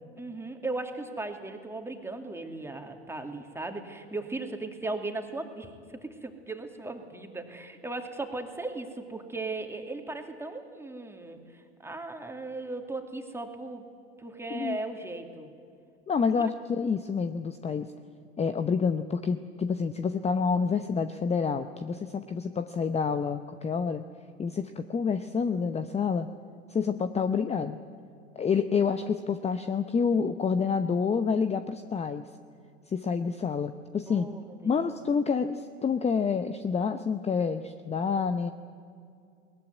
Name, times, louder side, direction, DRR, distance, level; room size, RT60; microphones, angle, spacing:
voice 1, 0.2-13.8 14.2-15.5 16.4-16.5 34.1-35.0, right 2 dB, 5° right, 4 dB, 2.6 m, -37 dB
voice 2, 16.1-17.9 18.4-24.0 24.4-26.3 26.7-27.8 28.3-32.3 32.9-34.3 34.6-38.5, left 5 dB, 20° left, 10 dB, 0.9 m, -28 dB
21.0 x 19.5 x 9.4 m, 2.3 s
hypercardioid pair, 90°, 33 cm